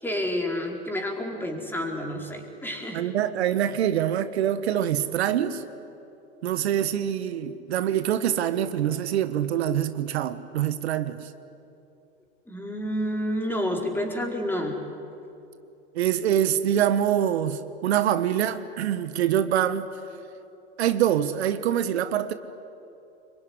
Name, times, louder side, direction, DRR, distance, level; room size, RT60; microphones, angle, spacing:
voice 1, 0.0-3.1 12.5-14.8, equal, 5° left, 1 dB, 4.6 m, -29 dB
voice 2, 2.9-5.6 6.4-11.3 15.9-19.9 20.8-22.3, right 10 dB, 70° right, 11 dB, 1.4 m, -25 dB
26.0 x 22.5 x 9.7 m, 2.8 s
hypercardioid pair, 95°, 33 cm